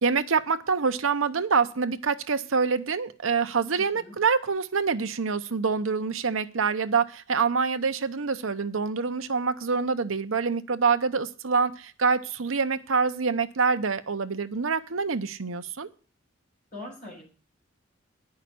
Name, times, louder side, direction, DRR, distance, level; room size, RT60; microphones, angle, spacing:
voice 1, 0.0-15.9, right 5 dB, 80° right, 10 dB, 0.8 m, -26 dB
voice 2, 3.7-4.2 16.7-17.2, left 2 dB, 40° left, -3 dB, 7.5 m, -41 dB
9.5 x 5.8 x 8.3 m, 0.39 s
head